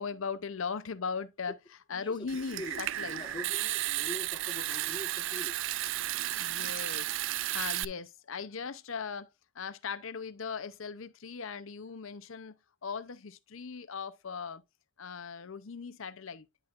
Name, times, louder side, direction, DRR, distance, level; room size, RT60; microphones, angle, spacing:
voice 1, 0.0-1.6 1.9-3.2 6.4-12.6 12.8-14.6 15.0-16.5, left 5 dB, 70° left, 0.7 m, -39 dB
voice 2, 1.9-2.8 3.1-5.6, left 1 dB, 20° left, 1.3 m, -44 dB
Water tap faucet / Sink (filling or washing) / Trickle dribble, 2.3-7.8, right 14 dB, 65° right, 0.3 m, -33 dB
10.5 x 5.9 x 2.5 m
head